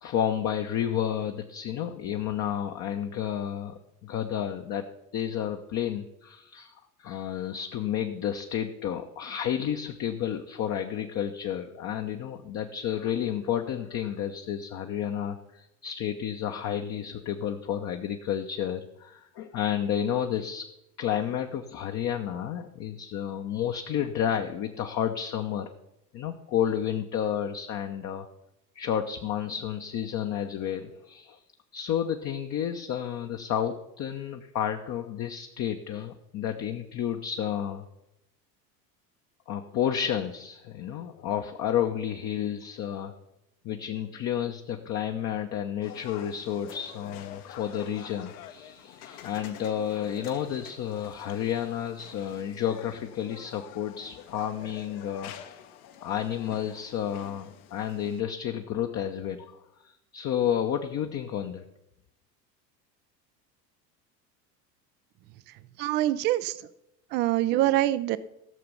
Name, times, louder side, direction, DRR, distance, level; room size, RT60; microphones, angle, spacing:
voice 1, 0.0-4.9 5.1-6.7 7.0-20.7 21.0-25.7 26.1-28.3 28.7-31.4 31.7-37.8 39.5-43.1 43.6-55.3 56.0-61.6, left 9 dB, 35° left, 5 dB, 0.9 m, -31 dB
sound 1, 45.8-58.2, left 10 dB, 55° left, 1.2 m, -47 dB
voice 2, 65.8-66.6 67.1-68.2, right 15 dB, 25° right, 16 dB, 0.4 m, -24 dB
15.5 x 6.8 x 5.6 m, 0.85 s
figure-of-eight pair, 75°, 50 cm